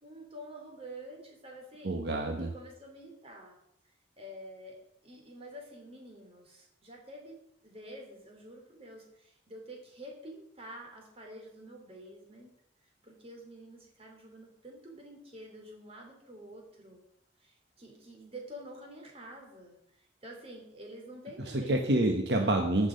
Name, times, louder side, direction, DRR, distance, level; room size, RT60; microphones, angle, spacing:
voice 1, 0.0-2.0 2.4-3.6 4.2-12.5 13.0-17.0 17.4-19.8 20.2-22.0 22.4-22.6, right 1 dB, 35° right, 1 dB, 3.2 m, -48 dB
voice 2, 1.8-2.5 21.5-22.9, right 1 dB, 70° right, 3 dB, 1.1 m, -27 dB
15.0 x 6.3 x 5.2 m, 0.77 s
head